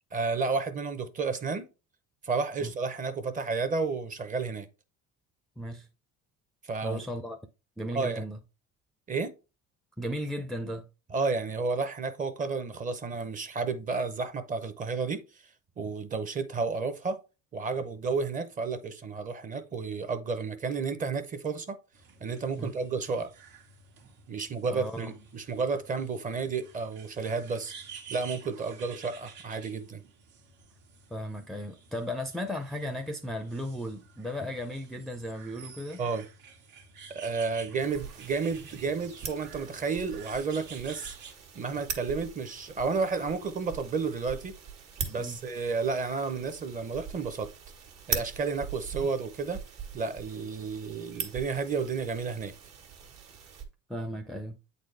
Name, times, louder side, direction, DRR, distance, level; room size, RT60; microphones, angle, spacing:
voice 1, 0.1-1.6 2.2-4.7 6.6-7.0 7.9-8.2 9.1-9.3 11.1-15.2 15.8-17.2 17.5-21.8 22.2-23.3 24.3-27.7 28.1-30.0 36.0-36.2 37.1-41.1 41.5-44.5 45.1-47.5 48.1-49.6 49.9-52.5, right 4 dB, 25° right, 0.7 m, -31 dB
voice 2, 5.6-5.9 6.8-7.4 7.8-8.4 10.0-10.9 22.6-22.7 24.7-25.1 31.1-36.0 45.2-45.4 53.9-54.6, equal, ahead, 0.4 m, -35 dB
sound 1, 21.9-41.3, right 6 dB, 80° right, 1.6 m, -51 dB
sound 2, 37.8-53.6, right 7 dB, 60° right, 1.5 m, -42 dB
8.5 x 4.1 x 3.3 m
cardioid pair, 155°, 30 cm